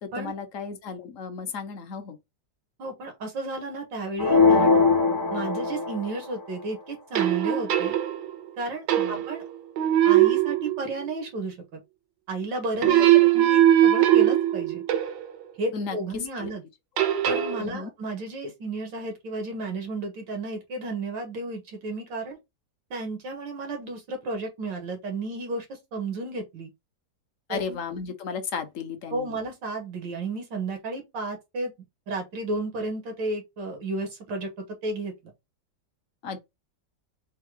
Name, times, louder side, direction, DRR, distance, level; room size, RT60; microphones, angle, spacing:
voice 1, 0.0-2.2 9.0-9.2 12.8-13.3 15.7-16.5 17.6-17.9 27.5-29.4 36.2-36.4, left 5 dB, 55° left, 1.0 m, -34 dB
voice 2, 2.8-4.8 5.3-8.0 8.6-9.4 10.0-11.8 12.3-14.8 15.6-16.6 17.3-22.4 22.9-25.7 25.9-26.7 27.5-27.8 29.1-31.7 32.1-34.5 34.8-35.1, right 2 dB, 90° right, 2.2 m, -33 dB
sound 1, 4.2-6.3, left 4 dB, 20° left, 0.5 m, -21 dB
sound 2, 7.2-8.4 8.9-9.5 9.8-11.1 12.8-15.3 17.0-17.6, right 12 dB, 70° right, 1.2 m, -20 dB
4.5 x 2.3 x 4.7 m
omnidirectional pair, 1.9 m